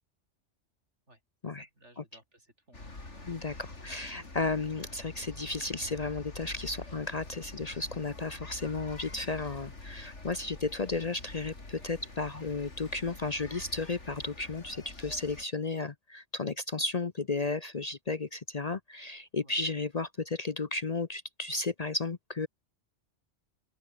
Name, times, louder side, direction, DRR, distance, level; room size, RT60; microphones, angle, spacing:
voice 1, 1.5-3.4 19.4-19.6, right 1 dB, 75° right, 8.4 m, -60 dB
sound 1, 2.7-15.5, left 2 dB, 75° left, 4.4 m, -46 dB
voice 2, 3.8-22.5, left 3 dB, 35° left, 0.9 m, -34 dB
open air
omnidirectional pair, 1.2 m